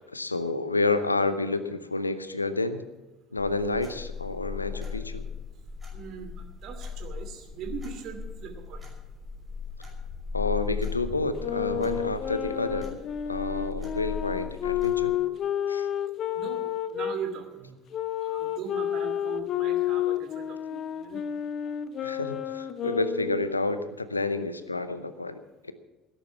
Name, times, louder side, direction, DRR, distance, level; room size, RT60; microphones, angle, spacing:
voice 1, 0.1-2.8 3.3-5.2 10.3-12.9 13.3-15.1 15.7-15.9 22.0-25.7, left 3 dB, 85° left, 12 dB, 0.8 m, -29 dB
sound 1, 3.4-15.1, left 5 dB, 20° right, 5.8 m, -38 dB
voice 2, 5.9-6.3 6.6-8.9 16.3-17.8 18.2-21.2, right 7 dB, 50° right, 6 dB, 2.6 m, -40 dB
sound 2, 11.4-17.2 17.9-23.5, left 10 dB, 45° left, 0.8 m, -30 dB
17.5 x 10.5 x 5.8 m, 1.1 s
figure-of-eight pair, 60°, 0 cm